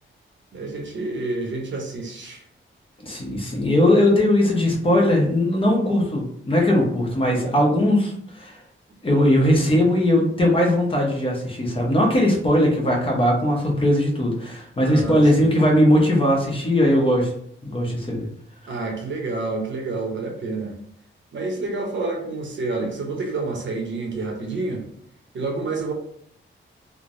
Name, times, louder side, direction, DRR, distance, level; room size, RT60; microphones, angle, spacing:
voice 1, 0.5-2.4 14.9-15.6 18.7-20.7 21.3-24.8 25.3-25.9, right 3 dB, 60° right, 1 dB, 0.7 m, -28 dB
voice 2, 3.0-8.6 9.0-17.3 17.6-18.3, left 1 dB, 25° left, -2 dB, 0.8 m, -19 dB
3.2 x 2.0 x 2.5 m, 0.67 s
wide cardioid pair, 115°, 21 cm